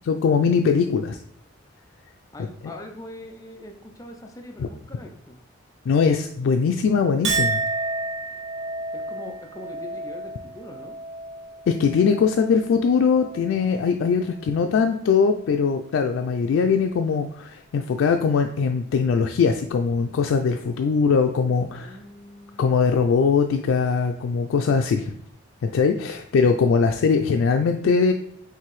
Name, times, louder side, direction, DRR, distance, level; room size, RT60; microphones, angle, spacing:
voice 1, 0.1-1.2 4.6-4.7 5.9-7.6 11.7-22.0 22.6-25.1 25.6-28.1, left 5 dB, 90° left, 5 dB, 0.3 m, -21 dB
voice 2, 2.3-5.4 8.9-11.0 21.7-22.8, left 1 dB, 15° left, 4 dB, 0.4 m, -42 dB
Chink clink, 7.2-13.8 14.2-14.8, right 3 dB, 75° right, 0.7 m, -31 dB
4.6 x 3.3 x 3.1 m, 0.71 s
head